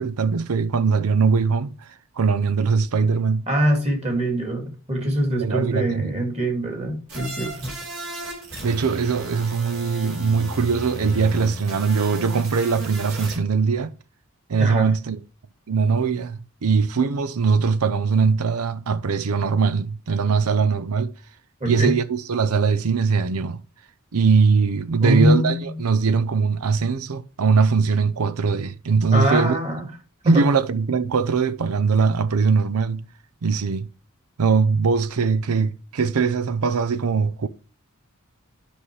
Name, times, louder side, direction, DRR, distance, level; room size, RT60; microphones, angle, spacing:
voice 1, 0.0-3.5 5.0-5.1 5.4-6.1 8.6-13.9 14.5-15.2 15.7-21.1 21.7-23.6 24.1-29.6 30.2-33.0 33.4-33.9 34.4-37.5, right 5 dB, 85° right, 0.6 m, -21 dB
voice 2, 3.5-7.7 14.6-14.9 21.6-21.9 25.0-25.8 29.1-29.9 30.2-30.4, equal, 30° right, 2.3 m, -23 dB
sound 1, 7.1-13.4, right 1 dB, 65° right, 3.8 m, -35 dB
10.0 x 5.6 x 3.2 m
head